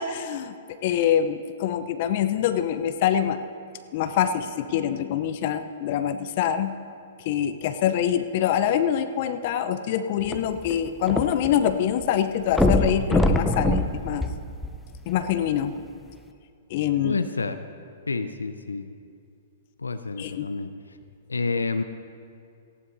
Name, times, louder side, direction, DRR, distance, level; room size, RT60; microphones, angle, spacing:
voice 1, 0.0-3.4 3.9-6.7 7.2-14.3 15.1-15.7 16.7-17.2 20.2-20.5, left 9 dB, 50° left, 9 dB, 0.7 m, -25 dB
sound 1, 10.2-11.7 12.0-12.1 12.5-15.1 15.8-15.9, left 1 dB, 5° left, 0.7 m, -23 dB
voice 2, 17.0-17.6 18.1-18.9 19.8-20.7 21.3-21.8, left 4 dB, 85° left, 9 dB, 0.6 m, -28 dB
18.0 x 15.5 x 2.7 m, 2.4 s
figure-of-eight pair, 115°, 0 cm